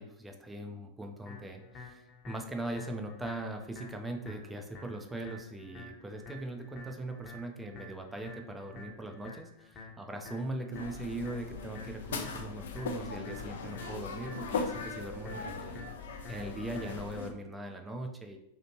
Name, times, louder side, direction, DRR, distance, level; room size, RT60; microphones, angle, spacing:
voice 1, 0.0-15.8 16.3-18.4, right 1 dB, 10° right, 3 dB, 0.4 m, -40 dB
sound 1, 1.3-17.2, left 2 dB, 30° left, 0.7 m, -50 dB
sound 2, 10.7-17.3, left 4 dB, 60° left, 0.3 m, -39 dB
2.8 x 2.4 x 2.9 m, 0.79 s
figure-of-eight pair, 90°, 0 cm